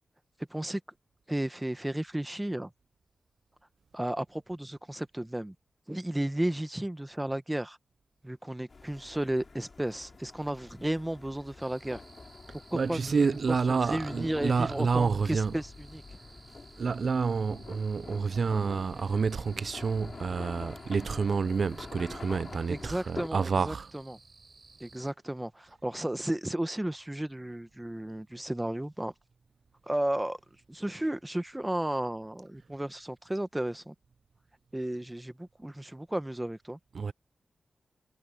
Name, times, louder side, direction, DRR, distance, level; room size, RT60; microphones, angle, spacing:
voice 1, 0.5-0.8 1.3-2.7 3.9-5.5 5.9-7.8 8.2-12.0 12.7-16.0 22.7-24.2 24.8-29.1 29.9-30.4 30.7-33.9 34.7-36.8, right 1 dB, 10° right, 1.0 m, -33 dB
sound 1, 8.7-23.3, left 4 dB, 45° left, 3.9 m, -47 dB
sound 2, 11.6-25.1, right 3 dB, 40° right, 4.3 m, -56 dB
voice 2, 12.7-15.5 16.8-23.9 36.9-37.1, right 5 dB, 65° right, 0.4 m, -29 dB
wide cardioid pair, 110°, 0 cm